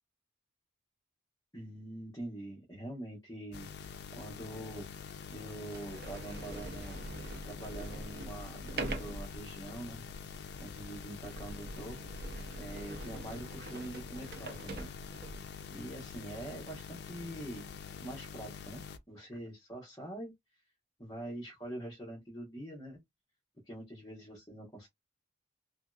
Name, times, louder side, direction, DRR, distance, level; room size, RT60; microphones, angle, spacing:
voice 1, 1.5-7.0 7.4-10.0 10.6-12.0 12.6-14.9 15.7-17.7 18.0-20.3 21.0-23.0 23.7-24.9, right 1 dB, 15° left, 0.9 m, -44 dB
sound 1, 3.5-19.0, left 6 dB, 55° left, 0.4 m, -46 dB
Sliding door, 4.2-4.3 5.1-5.2 5.6-15.6, right 2 dB, 50° right, 0.5 m, -44 dB
2.9 x 2.7 x 2.2 m
head